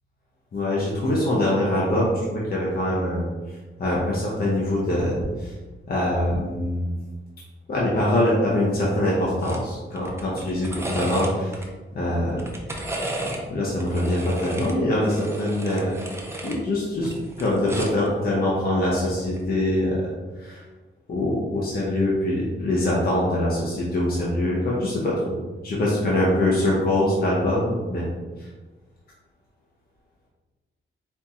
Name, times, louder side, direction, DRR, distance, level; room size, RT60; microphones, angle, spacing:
voice 1, 0.5-5.6 5.9-6.9 7.7-11.7 11.9-12.5 13.2-16.0 16.4-17.1 17.4-20.6 21.1-25.4 25.6-28.1 28.4-28.5, left 1 dB, 45° left, -5 dB, 0.9 m, -24 dB
sound 1, 9.4-9.6 10.0-11.7 12.3-13.4 13.8-16.6 16.9-18.1 19.2-19.4, right 1 dB, 10° right, 0.6 m, -34 dB
4.5 x 2.7 x 3.6 m, 1.3 s
wide cardioid pair, 145°, 21 cm